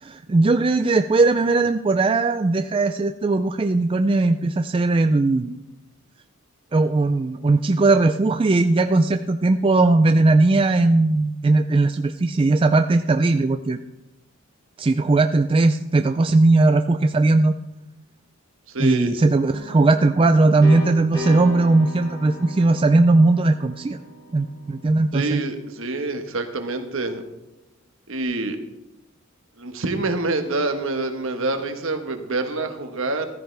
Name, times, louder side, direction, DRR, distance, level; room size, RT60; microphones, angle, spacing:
voice 1, 0.0-5.6 6.7-13.8 14.8-17.6 18.8-24.0 24.3-25.4, right 2 dB, 25° right, 8 dB, 0.3 m, -18 dB
voice 2, 18.7-19.1 25.1-27.2 28.1-28.6 29.6-33.3, right 2 dB, 60° right, 6 dB, 1.4 m, -26 dB
sound 1, 19.5-25.2, right 1 dB, 20° left, 4.2 m, -36 dB
14.5 x 13.5 x 3.4 m, 0.98 s
head